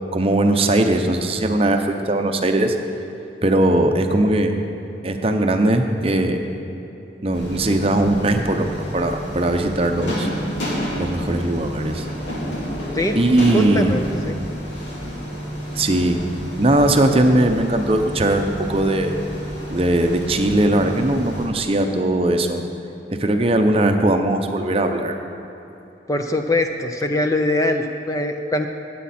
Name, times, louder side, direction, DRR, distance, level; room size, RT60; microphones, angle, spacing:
voice 1, 0.1-2.8 3.4-4.5 5.0-6.4 7.2-10.3 11.0-12.1 13.1-14.0 15.7-16.2 16.6-19.2 19.7-22.6 23.1-25.1, right 1 dB, 30° right, 5 dB, 0.7 m, -19 dB
sound 1, 7.3-21.5, equal, 85° left, 3.2 m, -30 dB
voice 2, 13.5-14.4 26.1-28.7, left 1 dB, 20° left, 5 dB, 0.5 m, -22 dB
17.5 x 8.4 x 4.3 m, 2.9 s
head